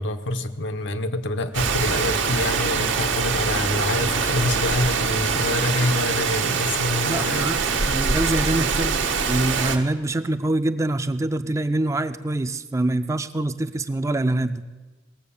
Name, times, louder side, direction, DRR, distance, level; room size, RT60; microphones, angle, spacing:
voice 1, 0.0-7.6, left 2 dB, 70° left, 9 dB, 0.8 m, -26 dB
Rain, 1.5-9.8, right 5 dB, 80° right, 1.2 m, -24 dB
voice 2, 7.1-14.6, right 2 dB, 15° right, 10 dB, 0.4 m, -25 dB
18.5 x 7.5 x 7.0 m, 1.2 s
head